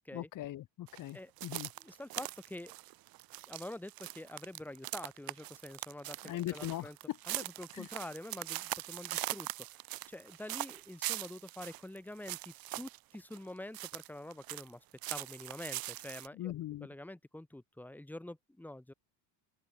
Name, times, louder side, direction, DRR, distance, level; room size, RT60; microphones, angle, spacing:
voice 1, 0.1-1.7 6.2-7.2 7.7-7.9 16.3-16.9, left 14 dB, 40° left, 1.5 m, -40 dB
sound 1, 0.9-14.7 15.0-16.3, right 17 dB, 45° right, 1.2 m, -41 dB
voice 2, 1.8-2.7 3.5-7.0 7.3-9.5 10.1-14.8 15.1-16.5 16.8-18.9, left 1 dB, 5° left, 4.0 m, -46 dB
open air
cardioid pair, 150°, 49 cm